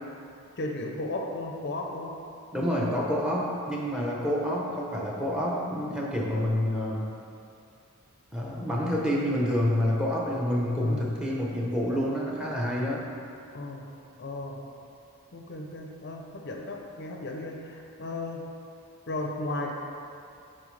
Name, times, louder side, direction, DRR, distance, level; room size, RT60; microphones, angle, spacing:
voice 1, 0.6-2.1 10.8-11.0 13.5-13.9 14.2-14.6 15.3-18.4 19.1-19.7, left 2 dB, 50° left, 1 dB, 0.6 m, -35 dB
voice 2, 2.5-7.1 8.3-13.1, equal, 5° right, -4 dB, 0.8 m, -28 dB
8.5 x 4.4 x 3.3 m, 2.6 s
head